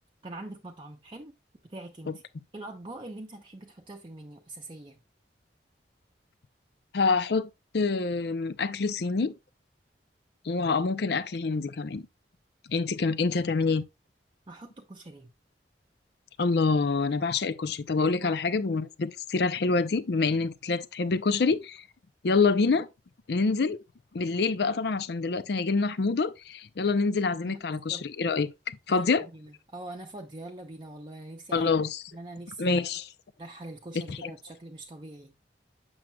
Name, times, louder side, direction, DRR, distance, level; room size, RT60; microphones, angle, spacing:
voice 1, 0.2-1.3 1.6-2.2 2.5-5.0 14.5-15.3 18.2-18.4 27.4-28.1 28.9-31.7 32.1-32.8 33.4-35.3, right 2 dB, 30° right, 0.6 m, -43 dB
voice 2, 6.9-7.5 7.7-9.3 10.4-12.1 12.7-13.8 16.4-21.8 22.2-22.9 23.3-23.8 24.1-29.3 31.5-32.0 32.6-33.1 34.1-34.3, left 4 dB, 65° left, 0.5 m, -26 dB
7.4 x 6.3 x 2.2 m
head